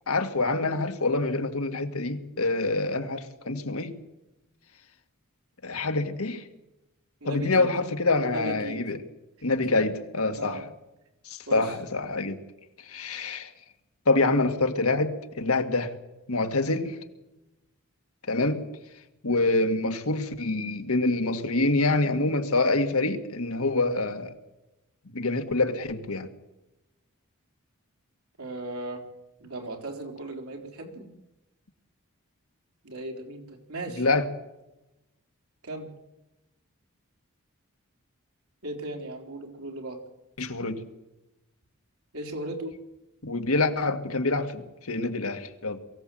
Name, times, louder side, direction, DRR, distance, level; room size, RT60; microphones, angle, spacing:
voice 1, 0.1-4.0 5.6-6.4 7.2-9.0 9.4-10.7 11.3-12.4 12.8-13.5 14.1-15.9 16.3-17.0 18.3-18.6 19.2-24.3 25.1-26.3 34.0-34.3 40.4-40.8 43.2-45.8, left 2 dB, 90° left, 2.0 m, -26 dB
voice 2, 7.2-7.7 8.3-8.8 9.7-9.9 10.3-10.7 11.5-11.7 28.4-29.0 29.4-31.1 32.8-34.1 35.6-35.9 38.6-40.0 42.1-42.8, right 2 dB, 85° right, 4.0 m, -37 dB
23.0 x 16.0 x 7.7 m
head